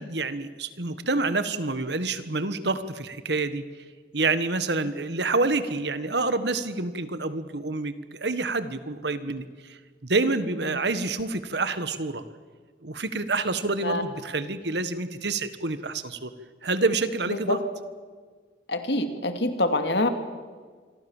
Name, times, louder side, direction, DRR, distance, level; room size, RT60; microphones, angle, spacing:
voice 1, 0.0-3.6 4.1-12.2 12.8-16.3 16.6-17.6, right 3 dB, 65° right, 12 dB, 1.6 m, -28 dB
voice 2, 18.7-20.1, left 2 dB, 65° left, 7 dB, 2.5 m, -25 dB
27.0 x 23.0 x 7.3 m, 1.5 s
head